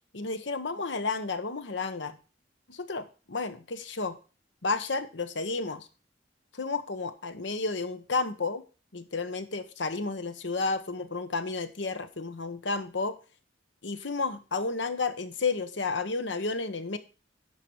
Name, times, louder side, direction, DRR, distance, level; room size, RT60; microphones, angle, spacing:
voice 1, 0.1-2.2 2.7-4.2 4.6-5.9 6.5-8.6 8.9-13.2 13.8-17.0, left 3 dB, 80° left, 11 dB, 1.1 m, -32 dB
10.5 x 5.7 x 4.7 m, 0.34 s
head